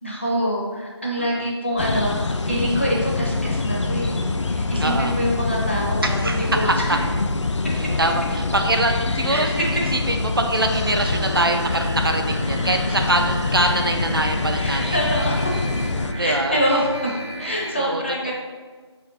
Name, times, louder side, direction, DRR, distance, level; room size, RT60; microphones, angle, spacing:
voice 1, 0.0-7.0 9.3-9.7 14.5-15.6 16.1-17.1 17.4-18.3, equal, 25° left, -4 dB, 0.7 m, -25 dB
sound 1, 1.8-16.1, left 3 dB, 90° left, 0.4 m, -25 dB
voice 2, 4.8-5.1 6.0-6.5 7.8-9.6 9.9-15.0 16.2-16.6 17.8-18.3, right 1 dB, 55° right, 4 dB, 0.4 m, -24 dB
sound 2, 10.6-17.7, equal, 10° right, 0.6 m, -35 dB
sound 3, 11.1-17.6, equal, 70° left, 1.4 m, -35 dB
4.5 x 4.3 x 2.7 m, 1.4 s
figure-of-eight pair, 170°, 15 cm